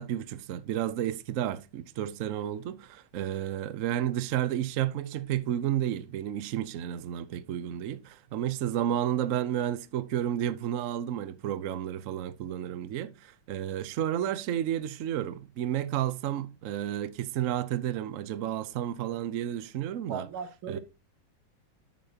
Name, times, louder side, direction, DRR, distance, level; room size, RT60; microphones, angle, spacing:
voice 1, 0.0-20.3 20.7-20.8, right 11 dB, 70° right, 0.7 m, -31 dB
voice 2, 20.1-20.8, right 6 dB, 85° right, 1.9 m, -37 dB
11.5 x 7.0 x 2.8 m
omnidirectional pair, 2.2 m